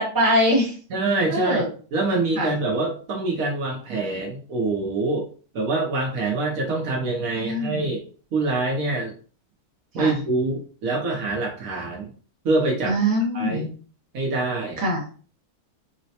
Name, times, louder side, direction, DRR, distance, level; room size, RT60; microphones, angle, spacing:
voice 1, 0.0-0.7 1.3-1.7 2.3-2.5 7.4-7.9 10.0-10.2 12.9-13.7 14.8-15.0, equal, 15° right, -4 dB, 0.9 m, -22 dB
voice 2, 0.9-1.6 1.9-5.3 5.5-9.1 9.9-12.1 12.4-13.0 13.3-13.7 14.1-14.8, right 3 dB, 65° right, -1 dB, 1.1 m, -25 dB
3.9 x 2.1 x 2.8 m, 0.40 s
omnidirectional pair, 1.6 m